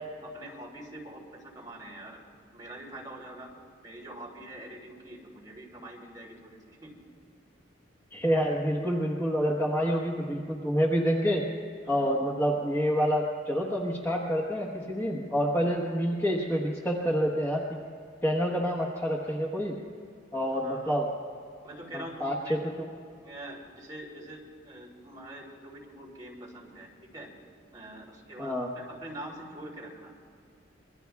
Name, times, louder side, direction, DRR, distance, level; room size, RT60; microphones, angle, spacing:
voice 1, 0.2-2.2 2.5-3.5 3.8-6.9 9.8-10.0 11.8-12.1 20.6-21.0 21.6-22.7 23.2-27.3 27.7-30.1, right 1 dB, 20° right, -4 dB, 3.2 m, -44 dB
voice 2, 8.1-11.5 11.9-17.6 18.2-19.8 20.3-21.1 21.9-22.4 22.8-22.9 28.4-28.7, equal, 10° left, -3 dB, 1.2 m, -27 dB
26.5 x 22.5 x 2.3 m, 2.3 s
head